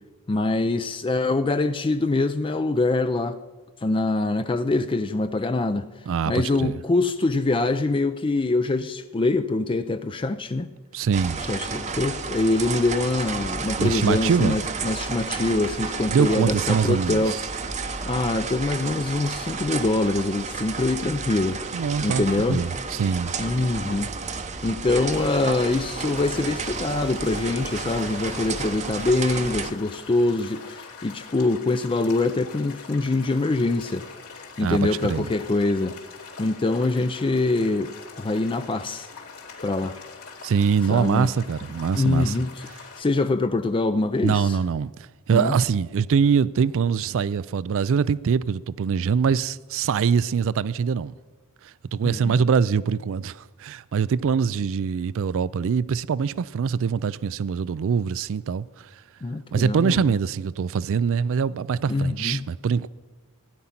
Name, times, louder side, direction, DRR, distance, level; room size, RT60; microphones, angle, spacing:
voice 1, 0.3-3.4 3.8-5.9 6.3-10.7 11.4-17.8 18.0-21.6 22.0-22.7 23.4-24.1 24.6-34.1 34.6-36.0 36.4-39.1 39.6-40.0 40.9-41.3 41.9-42.6 43.0-44.6 45.3-45.6 52.0-52.4 59.2-60.1 61.9-62.5, left 2 dB, 25° left, 0.4 m, -24 dB
voice 2, 6.1-6.8 10.9-11.4 13.8-14.6 16.1-17.4 21.7-23.3 34.6-35.3 40.4-42.3 44.2-44.9 45.3-51.1 51.9-58.6 59.5-62.9, right 6 dB, 60° right, 0.4 m, -23 dB
sound 1, 11.1-29.7, right 4 dB, 30° right, 0.7 m, -31 dB
sound 2, 25.1-43.0, left 5 dB, 70° left, 3.1 m, -43 dB
16.5 x 9.9 x 5.8 m
head